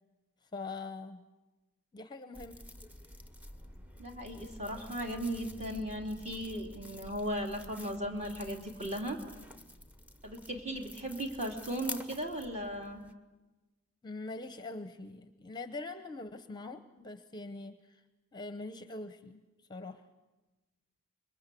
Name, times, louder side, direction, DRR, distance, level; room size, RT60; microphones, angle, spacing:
voice 1, 0.5-1.2 1.9-2.6 14.0-18.0 18.3-19.4 19.7-20.0, left 3 dB, 20° left, 10 dB, 0.8 m, -43 dB
sound 1, 2.3-13.1, left 1 dB, 5° right, 1.0 m, -49 dB
voice 2, 4.0-9.2 10.2-13.0, equal, 30° right, 2 dB, 2.8 m, -37 dB
25.5 x 22.0 x 8.3 m, 1.2 s
head